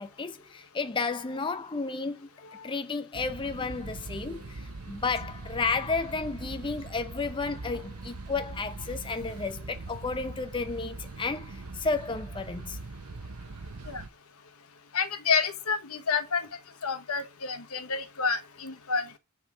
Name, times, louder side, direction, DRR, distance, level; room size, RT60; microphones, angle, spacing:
voice 1, 0.0-2.3 2.6-12.8, left 4 dB, 20° left, 0.5 m, -32 dB
sound 1, 3.1-14.1, right 3 dB, 85° right, 0.9 m, -41 dB
voice 2, 14.9-16.5 16.8-19.2, left 5 dB, 75° left, 1.2 m, -29 dB
9.7 x 4.5 x 5.0 m
head